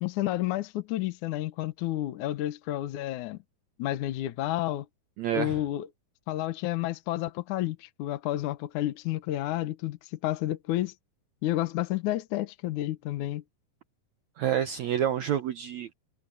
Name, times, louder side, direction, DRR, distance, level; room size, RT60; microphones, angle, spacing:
voice 1, 0.0-3.4 3.8-4.9 5.3-5.9 6.3-10.9 11.4-13.4, left 14 dB, 65° left, 2.2 m, -30 dB
voice 2, 5.2-5.6 14.4-15.9, right 10 dB, 75° right, 1.7 m, -28 dB
omnidirectional pair, 4.3 m